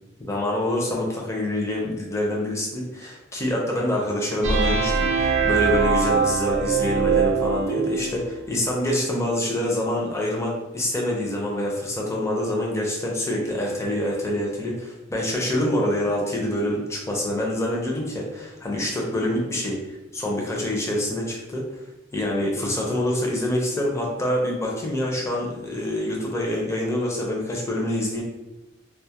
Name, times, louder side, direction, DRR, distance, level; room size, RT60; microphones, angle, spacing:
voice 1, 0.2-21.8 22.1-28.2, left 1 dB, 15° left, -2 dB, 0.5 m, -26 dB
sound 1, 4.4-8.2, right 5 dB, 90° right, 0.5 m, -22 dB
2.2 x 2.0 x 2.7 m, 1.0 s
head